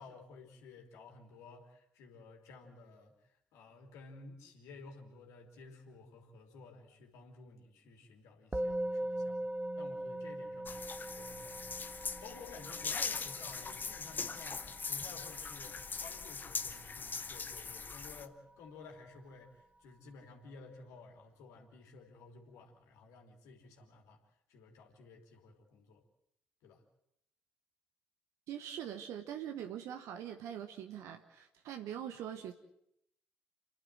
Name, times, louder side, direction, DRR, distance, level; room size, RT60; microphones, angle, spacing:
voice 1, 0.0-9.5 9.7-24.2 24.5-26.0 26.6-26.8, left 4 dB, 65° left, 3 dB, 3.2 m, -54 dB
Musical instrument, 8.5-18.0, right 1 dB, 20° right, 1.5 m, -41 dB
sound 1, 10.7-18.3, left 5 dB, 35° left, 1.0 m, -41 dB
voice 2, 28.5-32.5, right 10 dB, 65° right, 7 dB, 1.2 m, -43 dB
30.0 x 11.5 x 7.7 m, 0.76 s
figure-of-eight pair, 40°, 6 cm